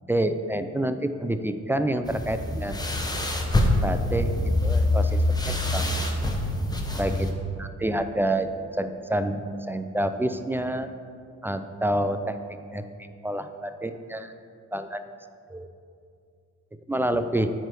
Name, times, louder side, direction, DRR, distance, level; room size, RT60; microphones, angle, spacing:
voice 1, 0.1-2.8 3.8-5.9 7.0-10.9 11.4-12.9 13.2-14.3 14.7-15.0 15.5-15.7 16.9-17.5, right 1 dB, 10° right, 9 dB, 0.3 m, -28 dB
sound 1, 2.1-7.3, left 1 dB, 15° left, 0.9 m, -25 dB
9.0 x 3.3 x 6.0 m, 2.4 s
cardioid pair, 90°, 30 cm